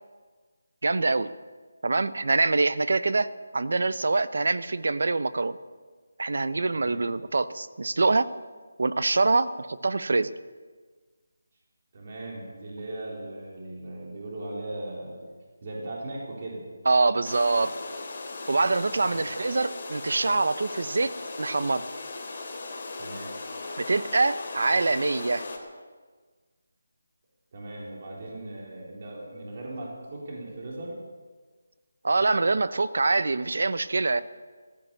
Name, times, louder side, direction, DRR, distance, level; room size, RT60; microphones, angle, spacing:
voice 1, 0.8-1.3 1.8-5.6 6.2-8.3 8.8-10.3 16.9-17.7 18.5-21.8 23.8-25.5 32.0-34.2, right 3 dB, 70° right, 14 dB, 0.8 m, -25 dB
voice 2, 6.7-7.1 11.9-15.3 15.6-16.7 17.6-17.7 19.0-19.2 23.0-23.4 27.5-31.0, right 1 dB, 40° right, -3 dB, 3.9 m, -38 dB
sound 1, 17.2-25.6, left 3 dB, 40° left, 3.2 m, -38 dB
15.0 x 13.5 x 6.8 m, 1.4 s
figure-of-eight pair, 170°, 0 cm